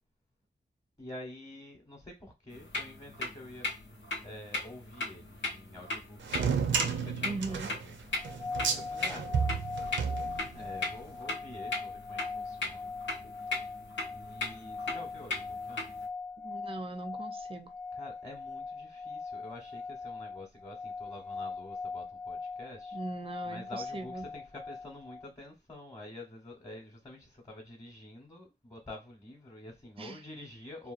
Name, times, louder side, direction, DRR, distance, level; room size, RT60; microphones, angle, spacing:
voice 1, 1.0-7.9 8.2-9.3 10.5-12.9 14.1-15.9 17.9-23.0 23.4-30.9, left 1 dB, 20° left, 0.8 m, -48 dB
sound 1, 2.5-16.1, left 3 dB, 85° left, 0.8 m, -39 dB
sound 2, 6.2-10.8, right 6 dB, 90° right, 0.5 m, -32 dB
voice 2, 7.2-7.7 16.4-17.7 22.9-24.3 30.0-30.2, right 3 dB, 30° right, 0.4 m, -40 dB
sound 3, 8.1-25.3, left 4 dB, 40° left, 0.5 m, -41 dB
2.8 x 2.1 x 2.4 m
wide cardioid pair, 100°, 19 cm